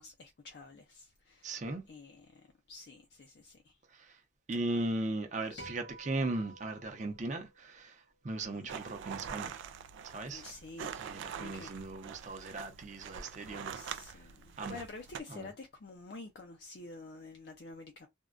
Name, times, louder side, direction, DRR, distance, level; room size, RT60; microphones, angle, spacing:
voice 1, 0.0-1.5 1.9-3.8 4.5-4.8 5.4-5.7 8.5-8.7 10.3-10.9 11.3-11.7 13.5-18.1, left 3 dB, 60° left, 0.4 m, -49 dB
voice 2, 1.4-1.8 3.9-4.2 4.5-9.6 10.0-10.4 11.0-14.3 14.6-14.8 15.3-15.5, right 2 dB, 40° right, 0.6 m, -38 dB
sound 1, 5.6-8.0, right 2 dB, 80° left, 1.5 m, -52 dB
sound 2, 8.7-15.2, right 8 dB, 90° right, 0.3 m, -44 dB
3.5 x 2.1 x 2.4 m
head